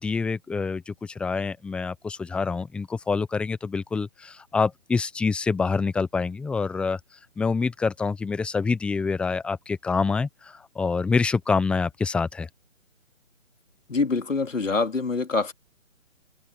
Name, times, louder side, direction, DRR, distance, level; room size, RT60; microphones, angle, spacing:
voice 1, 0.0-7.0 7.4-12.5, left 4 dB, 5° left, 1.1 m, -26 dB
voice 2, 13.9-15.5, left 3 dB, 75° left, 4.0 m, -25 dB
figure-of-eight pair, 145°, 39 cm